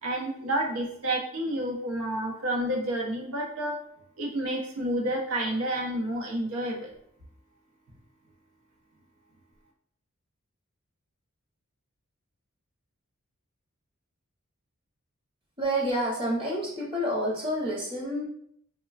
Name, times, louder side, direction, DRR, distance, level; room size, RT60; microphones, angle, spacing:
voice 1, 0.0-3.8 4.2-6.9, right 1 dB, 85° right, -1 dB, 0.7 m, -30 dB
voice 2, 15.6-18.2, equal, 25° right, -4 dB, 0.7 m, -28 dB
3.1 x 2.1 x 2.3 m, 0.68 s
head